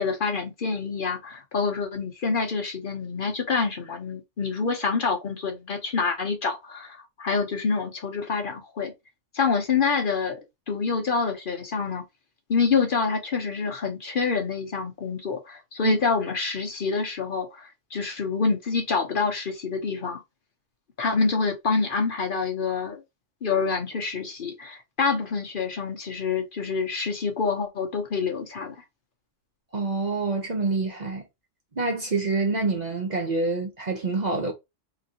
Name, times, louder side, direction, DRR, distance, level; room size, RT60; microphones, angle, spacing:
voice 1, 0.0-8.9 9.3-10.4 10.7-12.0 12.5-20.2 21.0-23.0 23.4-28.8, left 5 dB, 50° left, 0.8 m, -27 dB
voice 2, 29.7-31.2 31.8-34.5, right 3 dB, 45° right, 0.7 m, -26 dB
3.8 x 3.0 x 2.7 m
omnidirectional pair, 1.3 m